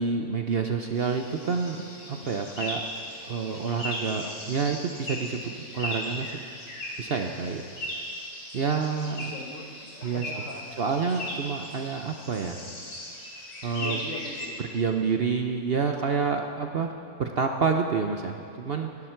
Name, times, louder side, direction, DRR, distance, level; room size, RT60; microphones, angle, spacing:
voice 1, 0.0-2.8 3.3-6.4 7.0-7.6 8.5-9.3 10.0-10.2 10.8-12.6 13.6-14.0 14.7-18.9, right 5 dB, 50° right, 4 dB, 0.8 m, -28 dB
sound 1, 0.9-14.5, left 1 dB, 80° left, 3.6 m, -38 dB
voice 2, 9.1-11.1 13.8-14.7, left 3 dB, 60° left, 2 dB, 1.7 m, -41 dB
25.5 x 11.0 x 4.5 m, 2.5 s
omnidirectional pair, 1.6 m